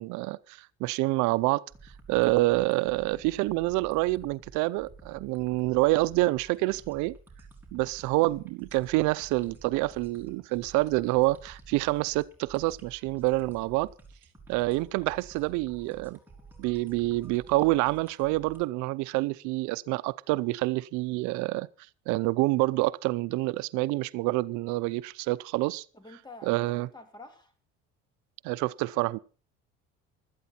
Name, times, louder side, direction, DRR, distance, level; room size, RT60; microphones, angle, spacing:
voice 1, 0.0-7.2 7.7-13.9 14.5-16.2 16.6-21.7 22.1-25.8 26.4-26.9 28.4-29.2, right 20 dB, 80° right, 0.6 m, -27 dB
sound 1, 1.7-18.6, right 4 dB, 5° right, 3.9 m, -51 dB
voice 2, 25.9-27.5, left 2 dB, 15° left, 2.8 m, -49 dB
16.5 x 12.5 x 4.3 m
cardioid pair, 115°, 29 cm